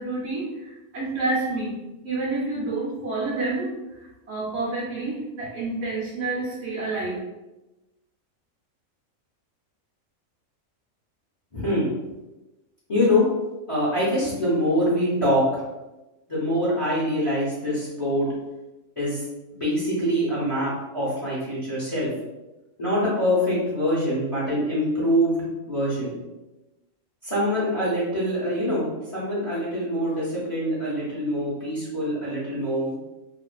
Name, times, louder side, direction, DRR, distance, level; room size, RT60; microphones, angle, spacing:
voice 1, 0.0-1.7 2.0-3.7 4.3-7.2, right 2 dB, 60° right, -6 dB, 0.8 m, -28 dB
voice 2, 11.5-11.9 12.9-13.2 13.7-15.4 16.3-18.3 19.0-19.3 19.5-22.1 22.8-26.1 27.2-28.8 29.1-33.0, equal, 30° left, -8 dB, 0.7 m, -24 dB
2.5 x 2.4 x 2.2 m, 1.0 s
omnidirectional pair, 1.4 m